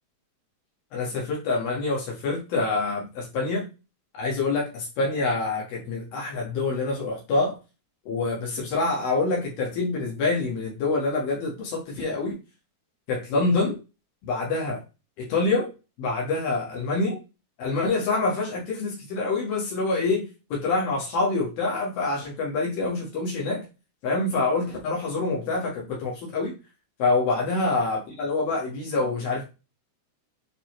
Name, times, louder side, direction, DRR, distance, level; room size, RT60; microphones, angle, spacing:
voice 1, 0.9-3.7 4.1-7.6 8.1-12.4 13.1-13.8 14.3-14.8 15.2-15.7 16.0-17.2 17.6-23.6 24.0-26.5 27.0-29.4, left 3 dB, 70° left, -4 dB, 3.3 m, -26 dB
9.6 x 4.1 x 3.1 m, 0.30 s
omnidirectional pair, 4.6 m